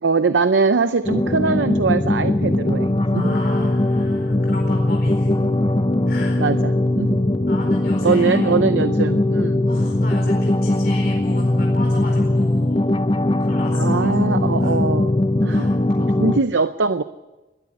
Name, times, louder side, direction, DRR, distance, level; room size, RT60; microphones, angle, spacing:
voice 1, 0.0-3.3 5.4-5.5 6.4-6.6 7.0-7.2 8.0-9.6 13.7-15.2 15.4-15.7 16.2-17.0, right 4 dB, 85° right, 12 dB, 0.6 m, -21 dB
sound 1, 1.0-16.4, left 1 dB, 25° left, 0.6 m, -20 dB
voice 2, 3.1-5.3 6.1-6.4 7.5-8.6 9.6-12.9 13.4-14.8 15.5-16.1, left 2 dB, 55° left, 0 dB, 4.4 m, -37 dB
21.5 x 12.5 x 9.9 m, 1.2 s
head